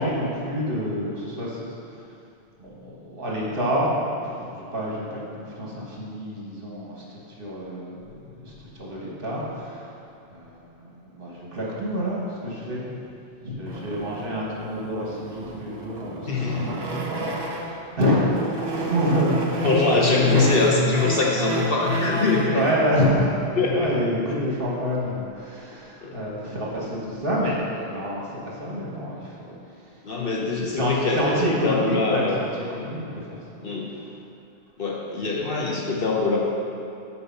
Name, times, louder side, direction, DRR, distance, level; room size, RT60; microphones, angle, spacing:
voice 1, 0.0-2.1 2.6-10.0 10.3-12.9 13.4-18.3 18.7-20.0 20.3-20.5 22.5-30.0 30.8-34.1 35.2-35.5, equal, 55° right, -4 dB, 1.5 m, -28 dB
sound 1, 13.7-17.9 18.3-22.6, right 2 dB, 35° right, 0.4 m, -31 dB
voice 2, 16.3-16.7 19.6-22.6 23.6-23.9 26.0-26.2 30.0-31.4 31.6-32.5 33.6-33.9 34.8-36.4, left 3 dB, 55° left, -2 dB, 1.0 m, -23 dB
6.9 x 4.5 x 5.4 m, 2.6 s
omnidirectional pair, 1.2 m